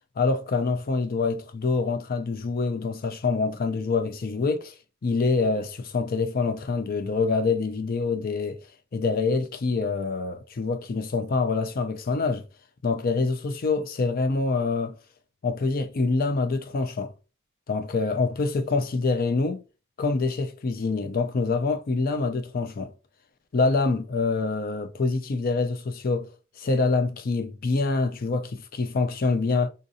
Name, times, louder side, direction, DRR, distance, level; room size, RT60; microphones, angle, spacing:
voice 1, 0.2-4.7 5.0-8.6 8.9-12.5 12.8-15.0 15.4-17.1 17.7-19.6 20.0-22.9 23.5-26.3 26.6-29.7, left 3 dB, 45° left, 0.5 m, -25 dB
3.8 x 2.5 x 2.6 m
head